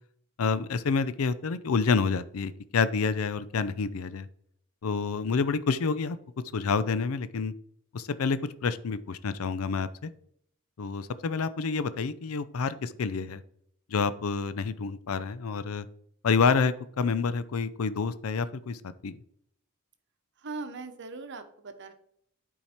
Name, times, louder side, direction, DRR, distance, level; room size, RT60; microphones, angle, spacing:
voice 1, 0.4-4.3 4.8-6.2 6.5-7.5 7.9-10.1 10.8-13.4 13.9-15.9 16.2-19.1, left 5 dB, 75° left, 15 dB, 0.5 m, -28 dB
voice 2, 20.4-21.9, right 3 dB, 55° right, 8 dB, 0.9 m, -40 dB
8.8 x 4.6 x 4.3 m, 0.68 s
head